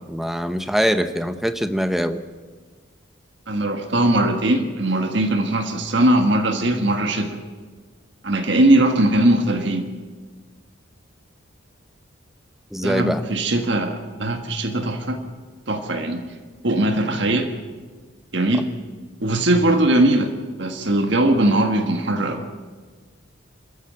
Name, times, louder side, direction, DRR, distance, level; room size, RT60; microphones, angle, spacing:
voice 1, 0.1-2.2 12.7-13.2, equal, ahead, 9 dB, 0.8 m, -23 dB
voice 2, 3.5-7.4 8.2-9.8 12.8-15.2 15.7-16.2 16.6-17.5 18.3-18.7 19.2-20.3 20.6-22.4, right 1 dB, 60° right, 6 dB, 1.6 m, -20 dB
27.0 x 13.5 x 7.6 m, 1.5 s
head